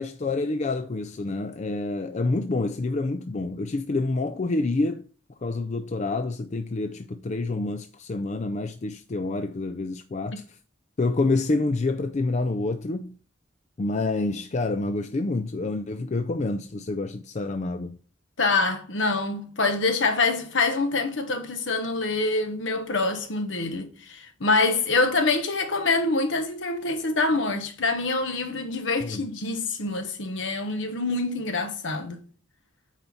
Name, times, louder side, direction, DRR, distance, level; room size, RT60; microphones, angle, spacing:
voice 1, 0.0-5.1 5.4-10.6 11.0-13.2 13.8-18.0 29.0-29.2, left 2 dB, 35° left, 0.4 m, -28 dB
voice 2, 18.4-32.2, left 3 dB, 70° left, 1.3 m, -25 dB
8.9 x 4.5 x 4.0 m
head